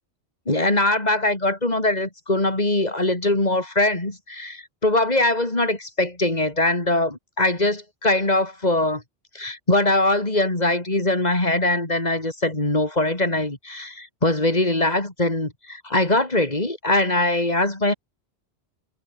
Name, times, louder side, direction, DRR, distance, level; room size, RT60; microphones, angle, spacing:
voice 1, 0.5-9.0 9.3-17.9, left 2 dB, 40° left, 3.9 m, -22 dB
omnidirectional pair, 1.1 m